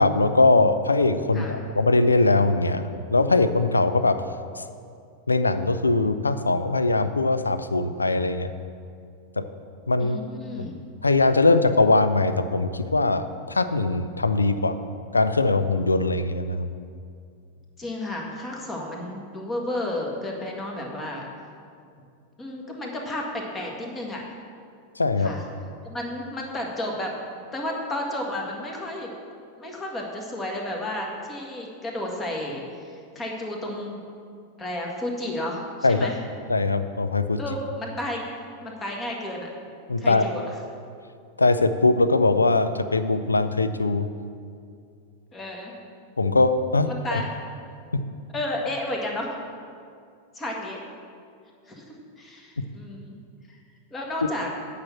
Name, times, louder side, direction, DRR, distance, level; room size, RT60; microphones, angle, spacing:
voice 1, 0.0-2.8 3.1-4.2 4.6-4.7 5.3-8.5 9.4-9.5 9.9-10.2 10.6-10.7 11.0-14.7 15.1-16.7 25.0-25.3 35.8-36.1 36.5-37.4 39.9-40.2 41.4-44.1 46.2-47.2 47.9-48.0 52.6-52.7, left 3 dB, 80° left, 11 dB, 0.5 m, -21 dB
voice 2, 1.3-1.6 10.0-10.7 17.8-21.3 22.4-24.2 25.2-25.4 25.8-27.1 27.5-29.1 29.6-34.0 34.6-36.1 37.4-38.2 38.6-39.5 40.0-40.4 45.3-45.7 46.9-47.2 48.3-49.4 50.3-50.8 51.7-53.1 53.5-53.6 53.9-54.5, left 1 dB, 20° left, 0 dB, 1.7 m, -32 dB
8.9 x 5.9 x 7.2 m, 2.3 s
figure-of-eight pair, 90°, 0 cm